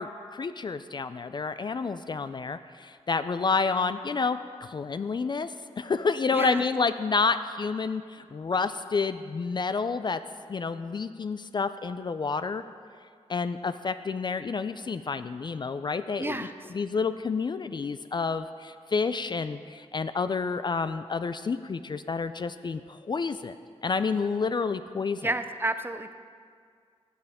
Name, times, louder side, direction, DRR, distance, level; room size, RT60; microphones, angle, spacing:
voice 1, 0.0-10.2 10.5-12.6 13.3-16.5 16.7-23.6 23.8-25.3, left 4 dB, 40° left, 12 dB, 0.3 m, -29 dB
voice 2, 6.3-6.7 16.2-16.6 25.2-26.1, right 2 dB, 20° right, 10 dB, 0.5 m, -31 dB
15.0 x 6.8 x 3.6 m, 2.1 s
cardioid pair, 70°, 12 cm